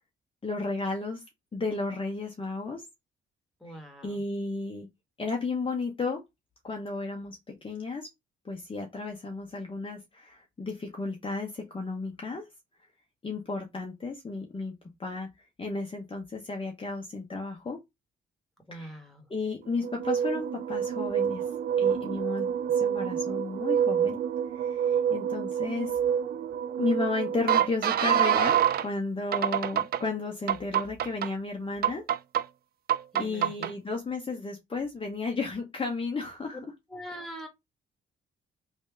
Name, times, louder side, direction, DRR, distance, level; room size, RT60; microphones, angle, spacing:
voice 1, 0.4-1.2 1.5-2.9 3.7-4.9 5.2-6.2 6.6-8.1 8.4-12.5 13.2-14.7 15.0-15.3 15.6-17.8 18.7-19.0 19.3-21.4 21.8-24.2 24.5-26.0 26.8-32.0 33.2-36.6, left 3 dB, 25° left, 0.9 m, -33 dB
voice 2, 3.6-4.2 18.7-19.2 33.1-33.7 36.9-37.5, right 1 dB, ahead, 1.4 m, -42 dB
sound 1, 19.8-28.9 29.3-30.0 30.5-31.3 31.8-32.4 32.9-33.7, right 9 dB, 50° right, 0.4 m, -27 dB
3.2 x 2.8 x 3.4 m
cardioid pair, 90°, 20 cm